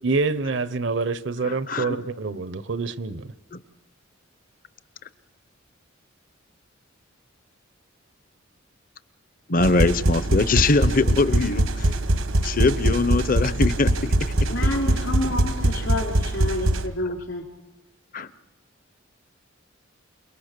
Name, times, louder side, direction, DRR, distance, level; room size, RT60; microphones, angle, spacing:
voice 1, 0.0-3.3, right 4 dB, 60° right, 15 dB, 0.7 m, -26 dB
voice 2, 1.4-2.0 3.5-3.6 9.5-11.9 12.4-13.9 17.1-17.2 18.1-18.3, left 3 dB, 45° left, 15 dB, 0.7 m, -22 dB
sound 1, 9.6-16.9, right 1 dB, 80° right, 1.2 m, -23 dB
voice 3, 14.5-17.4, left 1 dB, 70° left, 3 dB, 3.5 m, -28 dB
28.5 x 19.5 x 6.7 m, 1.1 s
head